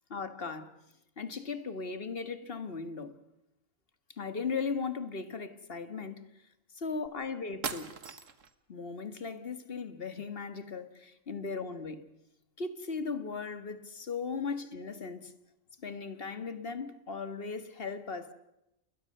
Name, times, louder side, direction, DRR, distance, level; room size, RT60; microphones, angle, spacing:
voice 1, 0.1-0.7 1.2-3.2 4.2-6.3 6.7-7.9 8.7-12.0 12.6-15.3 15.8-18.3, left 5 dB, 45° left, 1.9 m, -37 dB
sound 1, 7.1-7.2 7.6-8.6, right 6 dB, 70° right, 1.7 m, -39 dB
29.0 x 21.0 x 6.7 m
omnidirectional pair, 1.4 m